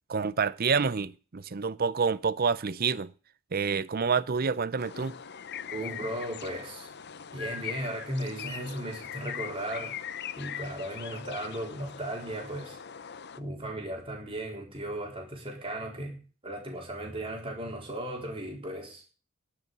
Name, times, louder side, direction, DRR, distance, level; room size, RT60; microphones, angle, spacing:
voice 1, 0.1-3.1 3.5-5.1, right 5 dB, 40° right, 0.5 m, -28 dB
sound 1, 4.8-13.4, left 8 dB, 50° left, 0.7 m, -41 dB
voice 2, 5.7-6.9 7.3-10.0 10.4-12.8 13.4-19.0, right 1 dB, 25° right, 4.2 m, -36 dB
12.0 x 6.9 x 9.0 m
head